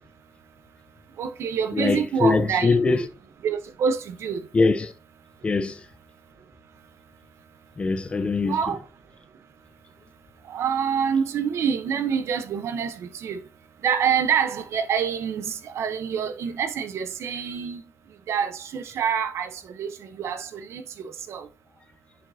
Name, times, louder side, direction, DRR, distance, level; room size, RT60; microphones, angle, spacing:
voice 1, 1.2-3.1 3.4-4.4 8.4-8.8 10.5-13.4 13.8-17.8 18.3-19.9 20.2-21.5, right 7 dB, 80° right, 0.9 m, -26 dB
voice 2, 1.7-3.1 4.5-4.9 5.4-5.8 7.8-8.8, left 4 dB, 25° left, 0.7 m, -22 dB
7.5 x 6.1 x 2.7 m
wide cardioid pair, 150°, 5 cm